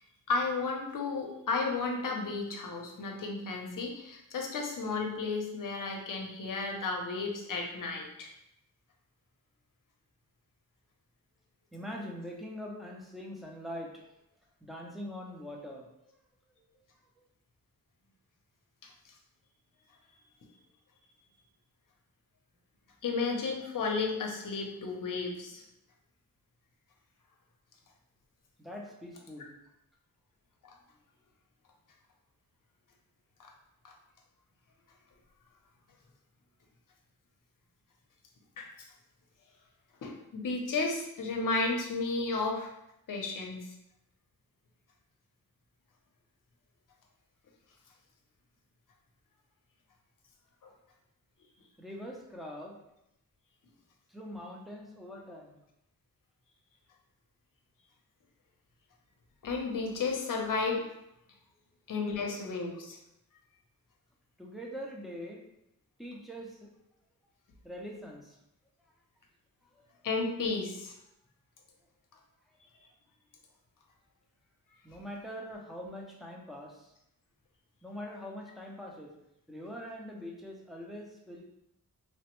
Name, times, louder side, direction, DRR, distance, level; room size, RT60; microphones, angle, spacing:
voice 1, 0.3-8.3 23.0-25.6 33.4-33.5 33.8-33.9 38.6-38.7 40.0-42.7 43.1-43.7 50.6-50.7 59.4-60.8 61.9-63.0 70.0-70.9, left 3 dB, 65° left, 1 dB, 0.6 m, -33 dB
voice 2, 11.7-14.1 14.6-15.9 16.6-16.7 28.6-29.5 51.8-52.8 54.1-55.6 64.4-65.4 66.0-66.7 67.6-68.4 69.6-69.9 74.8-76.9 77.8-79.1 79.5-81.4, equal, ahead, -1 dB, 0.4 m, -43 dB
3.1 x 2.0 x 2.9 m, 0.83 s
wide cardioid pair, 155°, 35 cm